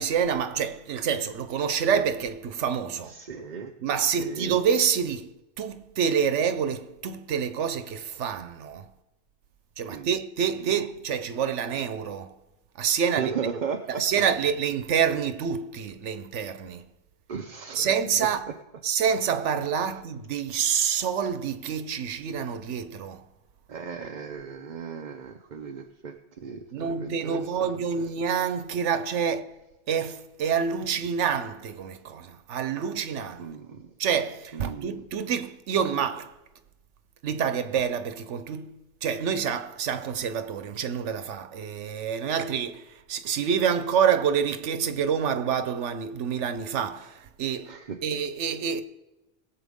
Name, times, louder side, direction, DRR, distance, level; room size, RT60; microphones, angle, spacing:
voice 1, 0.0-3.1 3.8-8.9 9.8-12.3 12.8-13.3 14.0-16.9 17.7-18.5 18.8-23.2 26.7-29.5 29.9-33.5 34.0-36.3 37.2-47.7 48.0-48.8, right 7 dB, 85° right, 1.1 m, -27 dB
voice 2, 3.1-3.7 4.2-4.6 9.9-10.1 10.6-10.7 13.1-14.0 17.3-18.3 23.7-27.7 28.2-28.3 33.4-33.9 34.5-35.0 47.6-48.0, right 6 dB, 45° right, 0.7 m, -36 dB
21.0 x 7.5 x 3.6 m
omnidirectional pair, 1.2 m